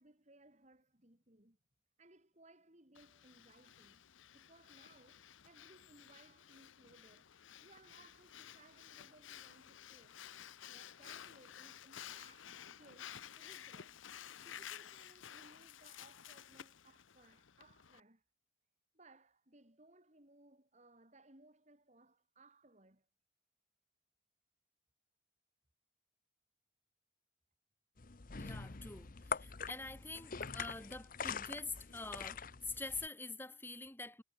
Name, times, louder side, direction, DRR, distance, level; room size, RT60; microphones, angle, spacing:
voice 1, 0.0-1.6 2.0-4.1 4.3-7.3 7.6-10.2 10.7-18.2 18.9-23.1, right 2 dB, 35° right, 3.4 m, -64 dB
Breathing, 2.9-18.0, left 10 dB, 80° left, 0.8 m, -54 dB
sound 1, 28.0-33.1, left 5 dB, 45° left, 0.9 m, -44 dB
voice 2, 28.4-34.2, left 3 dB, 10° left, 2.0 m, -46 dB
head